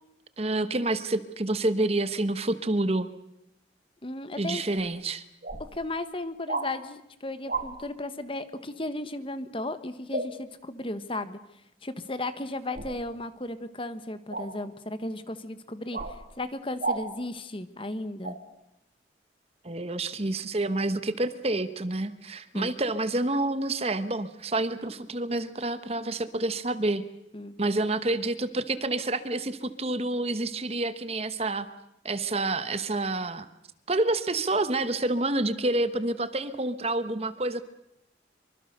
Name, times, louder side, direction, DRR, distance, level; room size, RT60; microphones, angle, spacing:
voice 1, 0.4-3.1 4.4-5.2 19.6-27.0 27.6-31.7 32.0-33.5 33.9-37.6, right 2 dB, 35° right, 12 dB, 1.2 m, -28 dB
voice 2, 4.0-4.6 5.7-11.4 11.8-16.0 16.4-18.4 22.5-22.7 27.3-27.5, left 2 dB, 30° left, 12 dB, 1.4 m, -35 dB
sound 1, 4.8-4.9 5.4-5.6 6.5-6.7 7.5-7.7 10.1-10.3 12.7-13.0 14.3-14.5 15.9-16.1 16.8-17.0 18.2-18.4, right 3 dB, 50° right, 3.0 m, -31 dB
25.0 x 24.5 x 6.7 m, 0.83 s
head